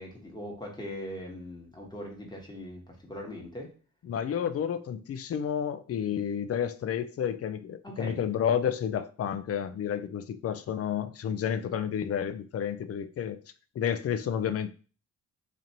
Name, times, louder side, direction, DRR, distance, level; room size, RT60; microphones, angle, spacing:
voice 1, 0.0-3.7 7.8-8.2, left 1 dB, 15° left, -1 dB, 1.2 m, -40 dB
voice 2, 4.0-13.4 13.8-14.7, left 8 dB, 50° left, 12 dB, 0.4 m, -30 dB
3.0 x 2.5 x 4.1 m, 0.38 s
cardioid pair, 105°, 32 cm